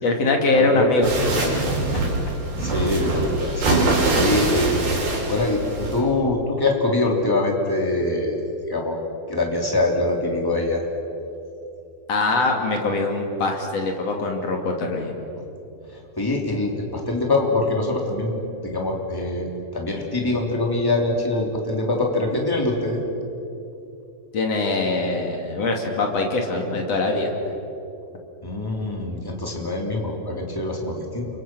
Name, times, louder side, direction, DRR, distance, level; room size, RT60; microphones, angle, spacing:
voice 1, 0.0-1.1 1.5-2.0 12.1-15.2 24.3-27.3, left 2 dB, 45° left, 2 dB, 3.3 m, -22 dB
voice 2, 0.5-0.9 2.6-3.7 4.1-5.0 5.3-9.0 9.3-10.8 16.2-18.3 18.6-23.0 28.4-31.3, left 2 dB, 5° left, 0 dB, 2.7 m, -24 dB
sound 1, 1.0-6.0, right 2 dB, 85° right, 6.4 m, -23 dB
29.0 x 24.5 x 6.2 m, 2.9 s
omnidirectional pair, 4.3 m